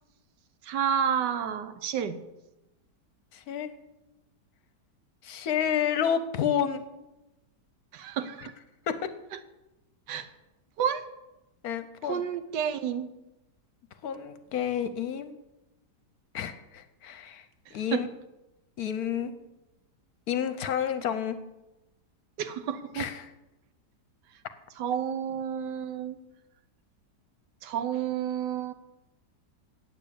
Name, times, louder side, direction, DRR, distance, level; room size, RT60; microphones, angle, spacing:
voice 1, 0.6-2.2 7.9-8.5 10.1-10.3 10.8-11.0 12.0-13.1 17.7-18.1 22.4-23.1 24.8-26.2 27.6-28.7, right 8 dB, 80° right, 11 dB, 1.4 m, -30 dB
voice 2, 3.3-3.7 5.2-6.8 8.9-9.0 11.6-12.2 14.0-15.4 16.3-17.4 17.7-18.1 18.8-19.3 20.3-21.4 22.9-23.2, left 8 dB, 65° left, 11 dB, 1.1 m, -30 dB
8.9 x 8.5 x 6.9 m, 0.99 s
omnidirectional pair, 1.9 m